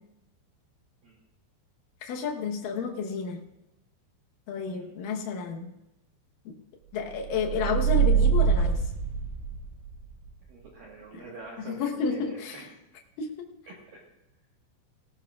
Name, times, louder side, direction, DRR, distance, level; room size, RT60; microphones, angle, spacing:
voice 1, 2.0-3.4 4.5-5.7 6.5-6.6 6.9-8.8 11.1-11.2 11.6-12.7 13.2-13.5, left 5 dB, 90° left, 0 dB, 1.9 m, -31 dB
sound 1, 7.3-9.9, right 6 dB, 80° right, 3.6 m, -24 dB
voice 2, 10.5-12.7 13.7-14.0, right 3 dB, 65° right, -2 dB, 2.5 m, -45 dB
18.5 x 17.0 x 2.4 m, 0.93 s
omnidirectional pair, 5.6 m